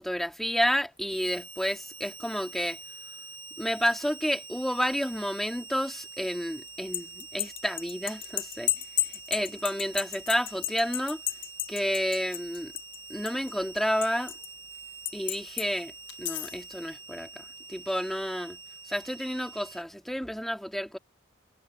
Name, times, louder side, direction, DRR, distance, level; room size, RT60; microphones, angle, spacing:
voice 1, 0.0-2.8 3.6-8.7 9.3-11.2 11.7-12.7 13.1-14.4 15.1-15.9 16.2-18.6 18.9-21.0, equal, ahead, 2.0 m, -30 dB
Harmonica, 1.1-19.8, right 4 dB, 85° right, 2.7 m, -46 dB
sound 1, 6.7-13.0 13.3-14.5 15.1-15.7 16.1-16.6, left 14 dB, 60° left, 0.7 m, -32 dB
head